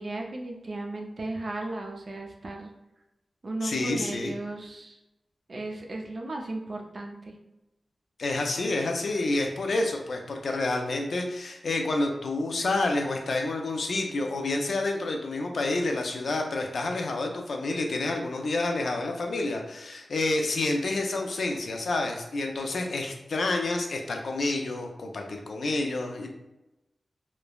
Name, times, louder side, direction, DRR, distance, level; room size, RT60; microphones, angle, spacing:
voice 1, 0.0-2.7 3.4-5.0 5.5-7.3, right 2 dB, 50° right, 1 dB, 0.4 m, -35 dB
voice 2, 3.6-4.3 8.2-26.3, left 2 dB, 70° left, 2 dB, 0.4 m, -29 dB
3.1 x 2.0 x 2.3 m, 0.96 s
wide cardioid pair, 105°, 0 cm